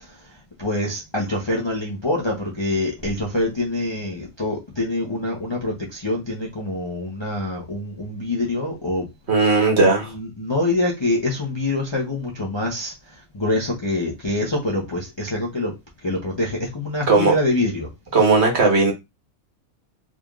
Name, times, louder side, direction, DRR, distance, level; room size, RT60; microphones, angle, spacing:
voice 1, 0.6-9.1 9.3-9.5 9.8-12.9 13.3-15.7 16.0-17.9, left 2 dB, 25° left, 0.6 m, -25 dB
voice 2, 9.3-10.1 17.1-17.4 18.1-18.9, right 3 dB, 50° right, 1.4 m, -17 dB
3.7 x 3.4 x 2.4 m
omnidirectional pair, 1.5 m